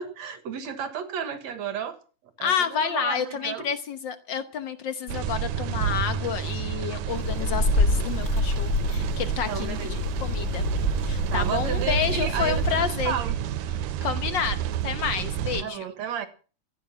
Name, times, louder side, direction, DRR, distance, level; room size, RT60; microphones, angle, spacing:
voice 1, 0.0-2.0 2.4-3.7 9.4-10.1 11.3-13.4 15.6-16.3, right 8 dB, 65° right, 10 dB, 2.6 m, -33 dB
voice 2, 2.4-10.6 11.0-13.1 14.0-15.9, left 7 dB, 80° left, 10 dB, 1.0 m, -29 dB
sound 1, 5.1-15.6, right 10 dB, 90° right, 2.4 m, -30 dB
sound 2, 7.2-12.8, left 3 dB, 35° left, 1.3 m, -27 dB
15.5 x 9.7 x 7.1 m, 0.38 s
omnidirectional pair, 3.6 m